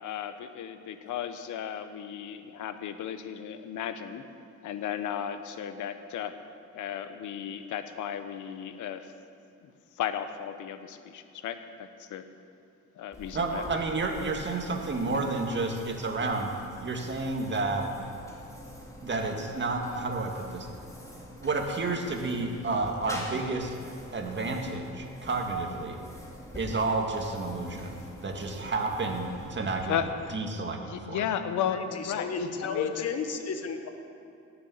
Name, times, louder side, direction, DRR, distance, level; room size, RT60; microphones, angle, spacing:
voice 1, 0.0-4.2 4.6-6.4 6.7-9.1 9.6-12.2 13.0-13.6 29.9-30.1 30.9-32.3 32.6-33.1, left 9 dB, 80° left, 10 dB, 0.9 m, -35 dB
sound 1, 13.1-30.5, left 1 dB, 10° left, 2.4 m, -46 dB
voice 2, 13.3-16.5 16.8-17.9 19.0-20.7 21.4-23.8 24.1-26.0 26.5-29.9 30.3-30.8 31.0-31.2, right 3 dB, 40° right, 3 dB, 1.9 m, -30 dB
voice 3, 31.7-33.9, left 5 dB, 55° left, 6 dB, 1.4 m, -32 dB
18.0 x 7.0 x 7.2 m, 2.6 s
cardioid pair, 90°, 30 cm